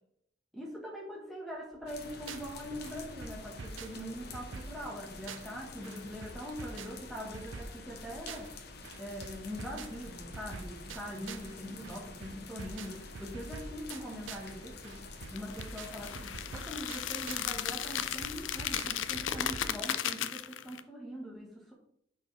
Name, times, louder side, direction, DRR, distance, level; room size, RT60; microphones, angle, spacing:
voice 1, 0.5-8.5 9.0-21.7, equal, ahead, -3 dB, 1.4 m, -42 dB
sound 1, 1.7-2.6 2.8-5.6 5.8-8.6 8.8-11.6 11.8-14.6 14.8-17.6 17.8-19.8, right 4 dB, 90° right, 0.6 m, -46 dB
sound 2, 1.9-19.2, left 3 dB, 55° left, 1.0 m, -48 dB
sound 3, 15.4-20.8, left 10 dB, 80° left, 0.5 m, -35 dB
10.5 x 4.7 x 3.3 m, 0.69 s
head